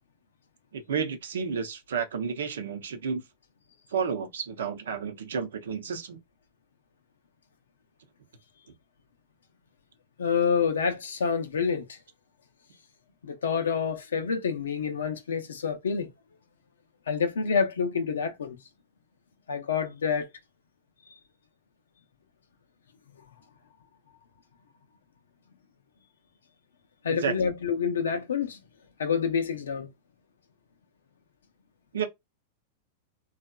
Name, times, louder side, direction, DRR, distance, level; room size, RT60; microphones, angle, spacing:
voice 1, 0.7-3.2 3.9-6.2 27.1-27.3 31.9-32.0, right 6 dB, 80° right, 0.7 m, -31 dB
voice 2, 10.2-12.0 13.2-16.1 17.1-18.6 19.5-20.3 27.0-28.6 29.0-29.9, left 6 dB, 85° left, 0.6 m, -27 dB
2.8 x 2.3 x 2.2 m
hypercardioid pair, 110°, 0 cm